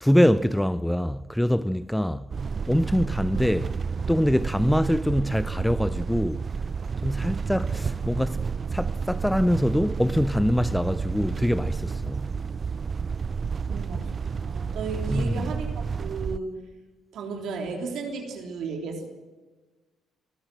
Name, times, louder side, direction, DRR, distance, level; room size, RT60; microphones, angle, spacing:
voice 1, 0.0-2.3 2.7-3.8 4.1-6.5 7.0-12.3 15.1-15.5, equal, 5° left, 0.6 m, -24 dB
sound 1, 2.3-16.4, right 5 dB, 45° right, 0.6 m, -30 dB
voice 2, 13.7-14.1 14.5-16.6 17.1-19.1, right 4 dB, 70° right, 3.5 m, -34 dB
26.0 x 13.5 x 7.7 m
supercardioid pair, 55°, 0 cm